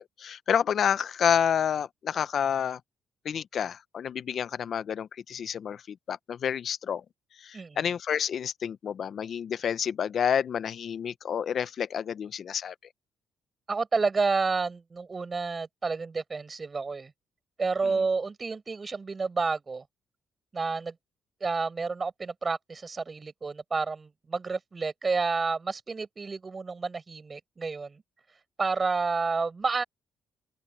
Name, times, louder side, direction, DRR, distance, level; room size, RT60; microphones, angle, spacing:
voice 1, 0.0-2.8 3.2-7.0 7.4-12.7 17.8-17.9, left 8 dB, 60° left, 1.0 m, -29 dB
voice 2, 13.7-17.1 17.6-19.8 20.5-20.9 21.4-28.0 28.6-29.8, right 4 dB, 30° right, 6.1 m, -30 dB
cardioid pair, 90°, 0 cm